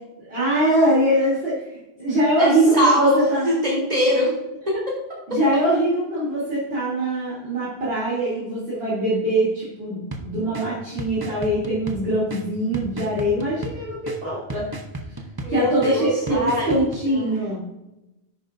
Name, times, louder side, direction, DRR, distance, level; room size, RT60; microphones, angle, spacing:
voice 1, 0.3-3.5 5.3-14.6 15.5-17.6, right 1 dB, 75° right, -10 dB, 3.4 m, -22 dB
voice 2, 2.4-4.4 4.7-5.4 15.4-16.7 17.1-17.4, left 1 dB, 40° right, -4 dB, 3.8 m, -23 dB
sound 1, 10.1-17.1, right 2 dB, 25° right, 0.8 m, -35 dB
10.5 x 8.7 x 2.6 m, 0.94 s
omnidirectional pair, 1.0 m